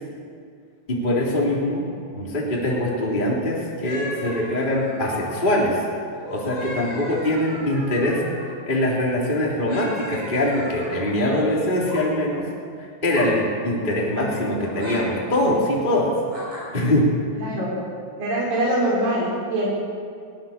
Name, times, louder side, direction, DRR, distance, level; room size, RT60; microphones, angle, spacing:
voice 1, 0.9-1.8 2.1-5.8 6.3-8.2 8.6-12.4 13.0-16.1 16.7-17.1, left 1 dB, 15° left, -4 dB, 3.3 m, -22 dB
sound 1, 3.8-5.5 6.1-8.5 9.6-11.1 11.7-12.0 13.1-13.4 14.6-15.0 16.3-16.6, equal, 35° right, 8.5 m, -36 dB
voice 2, 17.4-17.8 18.2-19.7, right 1 dB, 75° right, -5 dB, 6.1 m, -23 dB
22.5 x 18.5 x 7.4 m, 2.2 s
omnidirectional pair, 4.1 m